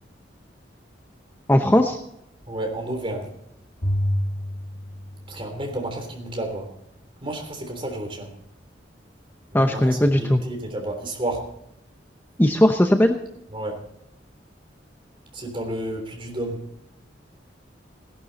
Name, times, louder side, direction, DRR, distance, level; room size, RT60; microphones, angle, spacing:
voice 1, 1.5-2.0 9.5-10.4 12.4-13.2, left 1 dB, 10° left, 5 dB, 0.7 m, -18 dB
voice 2, 2.5-3.3 5.3-6.7 7.2-8.3 9.5-11.5 13.5-13.8 15.3-16.6, right 1 dB, 30° right, 3 dB, 3.4 m, -31 dB
Bowed string instrument, 3.8-6.2, equal, 65° left, 2.3 m, -29 dB
17.5 x 11.5 x 4.2 m, 0.79 s
head